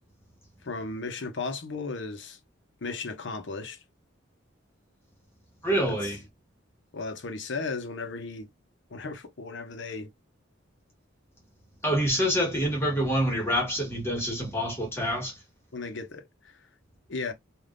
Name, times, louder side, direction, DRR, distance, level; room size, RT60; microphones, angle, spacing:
voice 1, 0.6-2.4 2.8-3.8 5.9-6.0 6.9-8.5 8.9-10.1 15.7-16.3 17.1-17.3, left 3 dB, 60° left, 0.7 m, -35 dB
voice 2, 5.6-6.2 11.8-15.4, equal, 15° left, 1.3 m, -26 dB
3.4 x 2.4 x 2.4 m
head